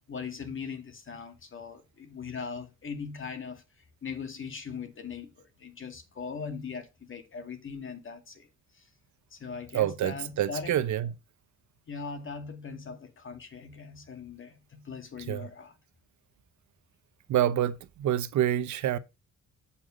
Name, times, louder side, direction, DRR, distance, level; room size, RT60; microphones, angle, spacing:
voice 1, 0.1-8.5 8.7-8.9 9.3-10.8 11.9-15.8, left 5 dB, 40° left, 2.3 m, -40 dB
voice 2, 9.7-11.1 15.3-15.5 17.3-19.0, right 11 dB, 70° right, 0.9 m, -27 dB
7.9 x 5.8 x 5.1 m
cardioid pair, 90°, 30 cm